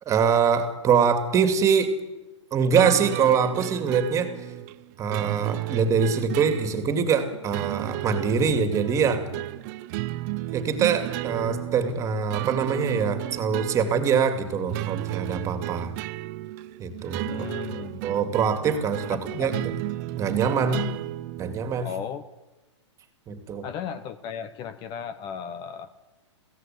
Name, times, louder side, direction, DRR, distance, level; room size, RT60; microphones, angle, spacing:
voice 1, 0.1-1.9 2.5-4.3 5.0-9.2 10.5-15.9 16.8-17.5 18.0-19.5 20.1-20.8 21.4-21.9 23.3-23.7, right 6 dB, 20° right, 8 dB, 2.6 m, -24 dB
sound 1, 2.7-21.9, right 17 dB, 35° right, 0.7 m, -33 dB
voice 2, 17.2-18.2 19.1-19.5 20.6-20.8 21.8-22.2 23.6-25.9, left 8 dB, 30° left, 13 dB, 1.1 m, -36 dB
22.0 x 16.5 x 9.4 m, 1.1 s
hypercardioid pair, 140°, 16 cm